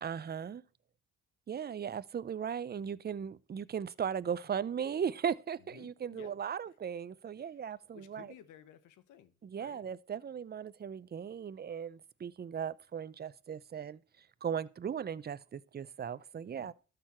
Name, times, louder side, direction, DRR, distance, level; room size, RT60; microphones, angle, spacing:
voice 1, 0.0-0.6 1.5-8.3 9.4-16.7, right 8 dB, 35° right, 0.7 m, -37 dB
voice 2, 5.7-6.4 7.4-7.6 7.9-9.8 16.5-16.7, left 10 dB, 85° left, 1.3 m, -56 dB
12.5 x 6.8 x 4.4 m
cardioid pair, 90°, 30 cm